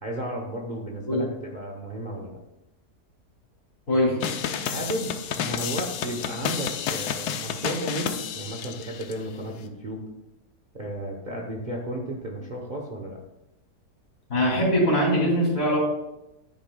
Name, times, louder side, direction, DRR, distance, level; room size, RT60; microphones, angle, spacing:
voice 1, 0.0-2.4 4.6-10.0 10.7-13.2, right 1 dB, 35° right, -1 dB, 0.8 m, -33 dB
voice 2, 3.9-4.2 14.3-15.8, equal, 55° left, -3 dB, 3.3 m, -22 dB
sound 1, 4.2-9.1, left 8 dB, 75° left, 1.2 m, -31 dB
9.8 x 8.3 x 2.3 m, 0.92 s
omnidirectional pair, 1.7 m